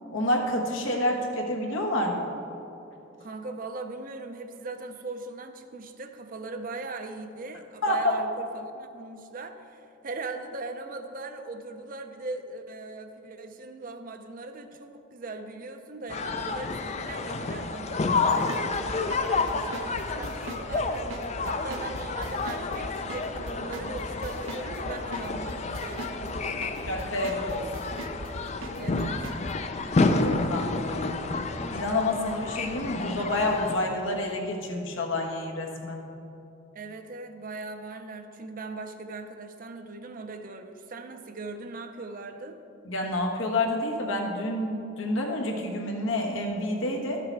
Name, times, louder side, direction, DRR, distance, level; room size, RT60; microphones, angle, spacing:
voice 1, 0.1-2.3 7.8-8.1 26.9-27.9 30.2-31.3 31.7-36.0 42.8-47.2, left 1 dB, 80° left, 0 dB, 1.3 m, -28 dB
voice 2, 3.2-21.1 21.4-26.9 28.8-29.2 36.7-42.6, right 3 dB, 45° right, 7 dB, 0.6 m, -40 dB
sound 1, 16.1-33.7, left 3 dB, 35° left, 0.4 m, -30 dB
sound 2, 18.3-29.5, right 1 dB, 80° right, 0.8 m, -39 dB
12.0 x 6.8 x 4.6 m, 2.8 s
head